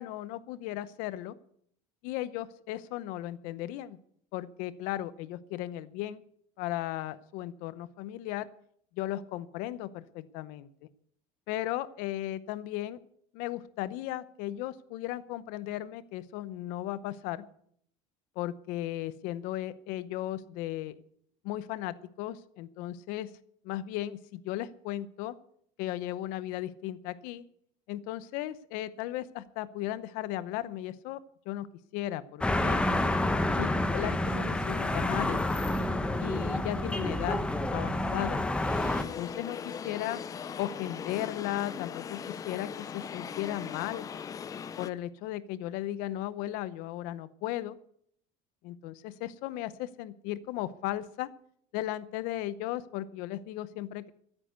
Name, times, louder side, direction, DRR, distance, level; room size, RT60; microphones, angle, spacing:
voice 1, 0.0-1.3 2.0-4.0 4.3-6.2 6.6-8.5 9.0-10.7 11.5-13.0 13.3-17.5 18.4-21.0 21.4-23.3 23.6-25.4 25.8-27.4 27.9-31.2 31.5-32.8 33.5-35.5 36.2-37.4 37.7-38.4 39.2-40.2 40.6-44.1 44.8-47.8 48.6-51.3 51.7-54.1, left 14 dB, 70° left, 16 dB, 0.8 m, -36 dB
sound 1, 32.4-39.0, left 1 dB, 5° left, 1.0 m, -29 dB
sound 2, 38.5-44.9, left 7 dB, 25° left, 0.5 m, -40 dB
13.0 x 9.9 x 8.1 m, 0.65 s
cardioid pair, 160°, 15 cm